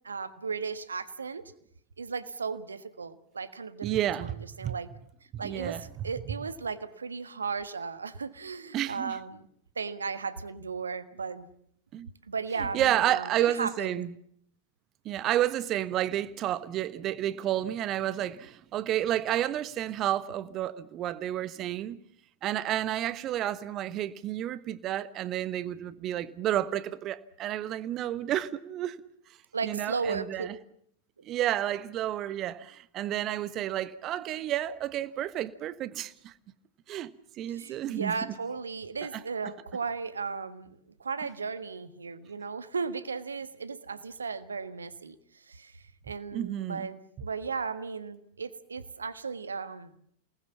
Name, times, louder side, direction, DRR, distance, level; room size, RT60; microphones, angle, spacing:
voice 1, 0.0-1.5 2.0-4.9 5.4-9.4 9.7-11.5 12.3-14.0 29.5-30.5 37.5-40.7 41.0-45.2 45.5-45.7 46.1-49.9, right 5 dB, 75° right, 1.5 m, -35 dB
voice 2, 3.8-4.8 5.3-6.3 8.7-9.2 11.9-12.1 12.6-14.1 15.0-22.0 22.4-29.0 29.6-30.5 31.2-36.3 36.9-37.1 37.4-38.4 39.1-39.2 46.3-46.9, right 12 dB, 35° right, 1.3 m, -31 dB
28.0 x 19.5 x 7.2 m
figure-of-eight pair, 90°, 0 cm